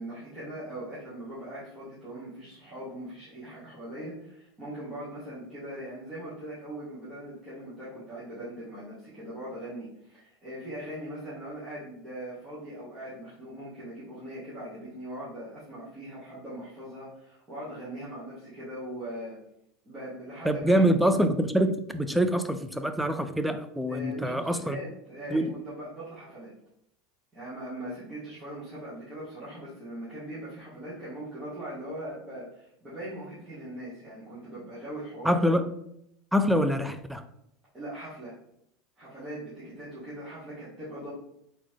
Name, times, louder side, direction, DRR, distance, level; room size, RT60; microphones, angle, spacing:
voice 1, 0.0-19.4 19.8-20.8 23.9-26.5 27.3-35.4 37.7-38.4 39.0-41.1, right 1 dB, 20° right, 1.6 m, -40 dB
voice 2, 20.4-24.8 25.3-25.5 35.2-35.7 36.3-37.2, equal, ahead, 0.3 m, -25 dB
4.0 x 3.9 x 3.3 m
supercardioid pair, 145°, 0 cm